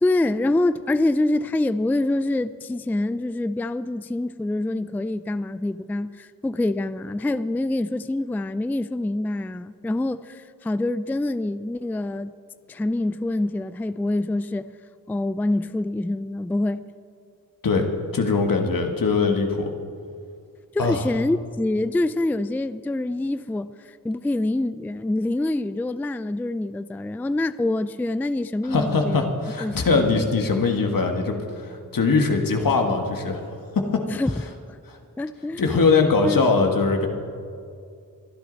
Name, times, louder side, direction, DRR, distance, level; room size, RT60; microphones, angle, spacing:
voice 1, 0.0-12.3 12.7-14.7 15.1-16.8 20.7-23.7 24.0-29.3 29.6-30.1 34.1-34.4 34.7-34.8 35.2-35.6 36.2-36.6, left 2 dB, 5° left, 0.3 m, -25 dB
voice 2, 18.1-19.7 20.8-21.0 28.6-33.4 33.7-34.1 34.9-35.0 35.6-37.1, left 4 dB, 75° left, 1.6 m, -21 dB
23.5 x 11.0 x 4.0 m
wide cardioid pair, 80°, 34 cm